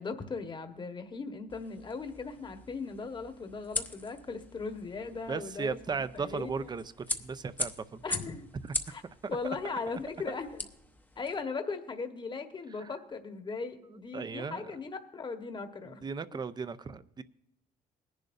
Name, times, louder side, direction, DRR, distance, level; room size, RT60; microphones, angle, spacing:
voice 1, 0.0-6.7 8.0-8.5 8.9-9.0 9.3-10.7 11.1-16.0, left 4 dB, 30° left, 7 dB, 1.3 m, -38 dB
sound 1, 1.5-11.4, left 2 dB, 10° left, 0.8 m, -41 dB
voice 2, 5.3-8.0 12.8-12.9 14.1-14.6 15.9-17.2, right 5 dB, 25° right, 14 dB, 0.6 m, -36 dB
20.0 x 10.5 x 2.6 m, 0.80 s
cardioid pair, 110°, 17 cm